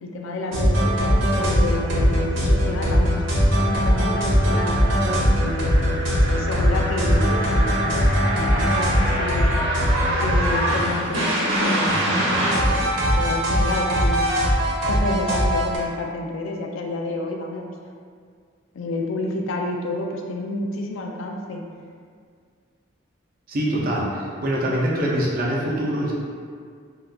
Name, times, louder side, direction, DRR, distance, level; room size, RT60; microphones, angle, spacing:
voice 1, 0.0-3.2 3.7-4.8 5.4-9.5 10.2-12.4 12.7-14.3 14.9-17.7 18.7-21.6, left 2 dB, 75° left, 1 dB, 0.4 m, -30 dB
sound 1, 0.5-15.8, equal, 70° right, 0.8 m, -20 dB
voice 2, 23.5-26.1, equal, 45° right, -4 dB, 0.5 m, -24 dB
3.6 x 2.3 x 2.2 m, 2.1 s
head